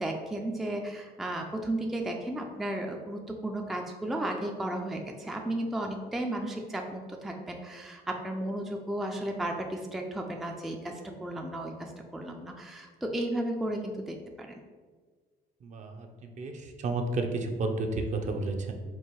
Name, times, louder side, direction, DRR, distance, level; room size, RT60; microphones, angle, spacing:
voice 1, 0.0-14.6, right 1 dB, ahead, 2 dB, 0.4 m, -34 dB
voice 2, 15.6-18.7, right 2 dB, 45° right, 4 dB, 0.6 m, -32 dB
4.6 x 2.6 x 4.5 m, 1.5 s
cardioid pair, 110°, 17 cm